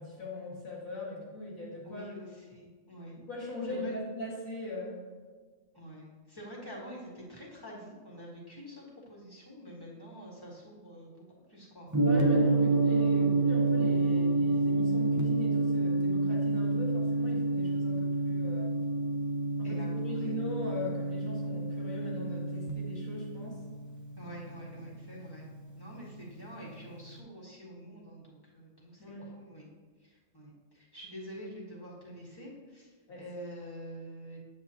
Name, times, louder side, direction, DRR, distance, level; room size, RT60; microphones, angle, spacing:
voice 1, 0.0-2.1 3.3-5.1 12.0-18.7 19.6-23.6 29.0-29.3 33.1-33.2, left 1 dB, 80° left, -4 dB, 2.4 m, -40 dB
voice 2, 1.8-3.2 3.7-3.9 5.7-11.2 11.5-11.9 19.6-20.4 24.2-25.5 25.8-29.7 30.0-32.9 33.2-34.4, equal, 15° left, -5 dB, 1.7 m, -47 dB
Gong, 11.9-26.1, right 2 dB, 20° right, 0.5 m, -29 dB
8.9 x 7.4 x 2.9 m, 1.4 s
omnidirectional pair, 1.4 m